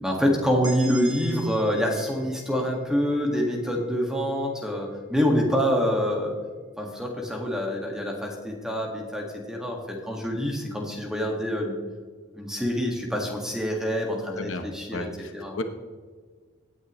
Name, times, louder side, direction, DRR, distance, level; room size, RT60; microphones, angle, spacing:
voice 1, 0.0-6.4 6.8-11.8 12.3-15.1 15.3-15.5, equal, 5° right, 0 dB, 1.8 m, -26 dB
sound 1, 0.6-4.4, right 2 dB, 20° right, 2.1 m, -44 dB
voice 2, 14.4-15.6, left 2 dB, 75° left, 6 dB, 1.1 m, -34 dB
17.0 x 9.4 x 3.1 m, 1.5 s
head